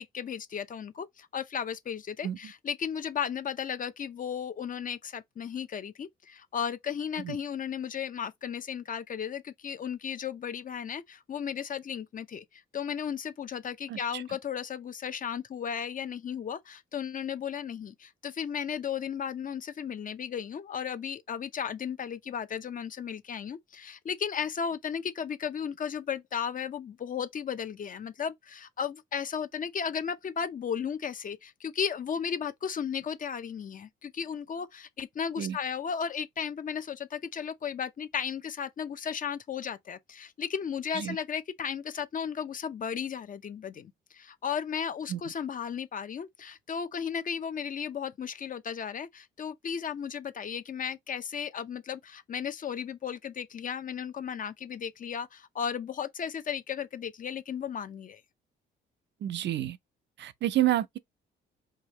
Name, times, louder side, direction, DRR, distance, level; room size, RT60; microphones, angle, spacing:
voice 1, 0.0-58.2, left 7 dB, 45° left, 0.6 m, -35 dB
voice 2, 13.9-14.2 35.4-35.6 40.9-41.2 45.1-45.2 59.2-59.8 60.2-61.0, right 13 dB, 65° right, 0.5 m, -29 dB
4.8 x 2.7 x 3.0 m
cardioid pair, 90°, 20 cm